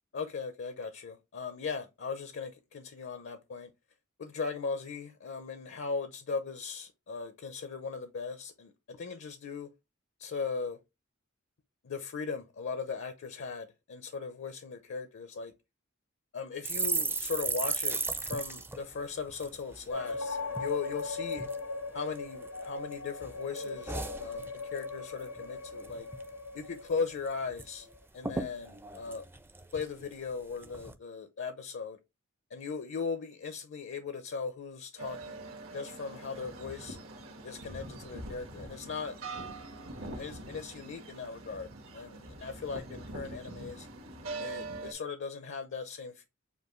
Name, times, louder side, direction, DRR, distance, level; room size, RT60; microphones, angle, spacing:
voice 1, 0.1-3.7 4.2-9.7 10.2-10.8 11.8-15.5 16.3-21.5 21.9-26.1 26.5-27.9 28.1-29.2 29.7-32.0 32.5-35.4 35.7-37.0 37.4-39.2 40.0-43.9 44.4-46.3, left 5 dB, 60° left, 0.6 m, -38 dB
sound 1, 16.6-20.2 20.5-20.7 21.0-21.6 22.1-22.9 23.2-24.9 25.2-25.4 25.7-26.3 26.6-26.7 27.0-27.7 27.9-28.0 28.2-30.1 30.6-30.9, right 3 dB, 10° right, 0.4 m, -36 dB
sound 2, 19.9-28.0, left 3 dB, 80° left, 1.0 m, -39 dB
sound 3, 35.0-44.9, right 2 dB, 75° right, 1.3 m, -43 dB
6.7 x 2.6 x 3.0 m
head